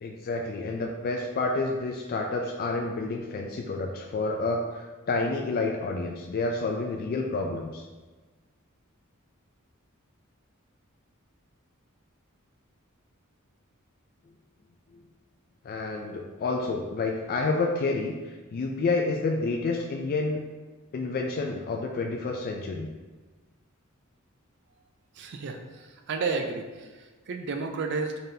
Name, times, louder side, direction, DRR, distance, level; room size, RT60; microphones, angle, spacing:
voice 1, 0.0-7.8 14.9-15.0 15.6-20.4 20.9-22.9, left 3 dB, 45° left, 2 dB, 0.3 m, -29 dB
voice 2, 25.2-28.2, right 4 dB, 55° right, 5 dB, 0.4 m, -32 dB
3.9 x 3.4 x 2.7 m, 1.3 s
head